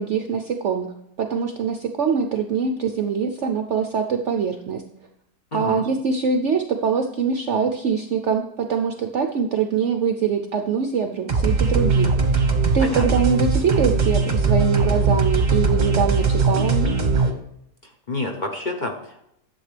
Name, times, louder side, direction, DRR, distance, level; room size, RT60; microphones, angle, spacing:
voice 1, 0.0-4.8 5.5-12.5 12.7-17.0, right 6 dB, 65° right, 5 dB, 0.7 m, -23 dB
voice 2, 5.5-5.8 12.8-13.2 17.8-19.3, left 2 dB, 35° left, 2 dB, 0.8 m, -29 dB
sound 1, 11.3-17.3, right 4 dB, 30° right, 1.0 m, -20 dB
11.5 x 7.2 x 3.3 m, 0.78 s
omnidirectional pair, 1.8 m